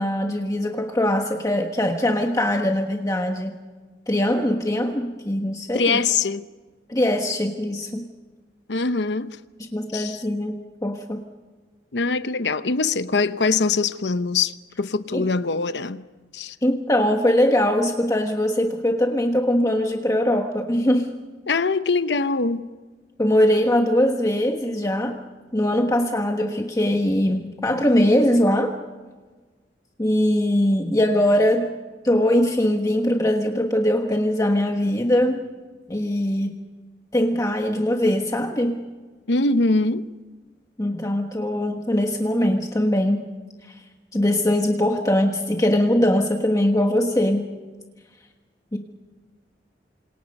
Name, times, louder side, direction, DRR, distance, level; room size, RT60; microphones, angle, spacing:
voice 1, 0.0-3.6 4.1-6.0 6.9-8.1 9.7-11.2 15.1-15.3 16.6-21.1 23.2-25.2 25.5-28.7 30.0-31.7 32.0-35.5 35.9-36.5 37.1-38.8 40.8-43.2 43.6-43.8 44.1-47.4 48.7-48.8, left 1 dB, 20° left, 1.3 m, -21 dB
voice 2, 5.7-6.4 8.7-9.4 9.9-10.2 11.9-16.0 16.3-16.6 21.5-22.7 39.3-40.1, left 4 dB, 75° left, 0.8 m, -23 dB
29.0 x 26.5 x 5.4 m
head